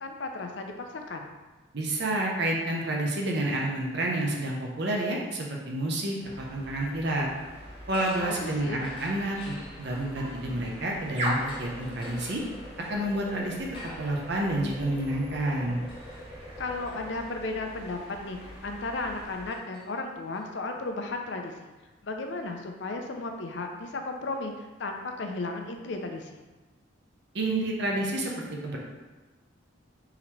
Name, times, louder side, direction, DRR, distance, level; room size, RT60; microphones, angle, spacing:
voice 1, 0.0-1.3 8.2-8.9 16.6-21.7 22.0-26.4, left 3 dB, 60° left, 4 dB, 0.5 m, -35 dB
voice 2, 1.7-7.3 7.9-12.4 12.9-15.8 27.3-28.3 28.6-28.8, right 1 dB, 55° right, -1 dB, 0.6 m, -29 dB
sound 1, 6.2-19.6, equal, 35° right, 1.2 m, -41 dB
sound 2, 7.8-10.9 11.4-20.4, left 1 dB, 25° left, 0.9 m, -49 dB
3.8 x 2.9 x 4.4 m, 1.2 s
head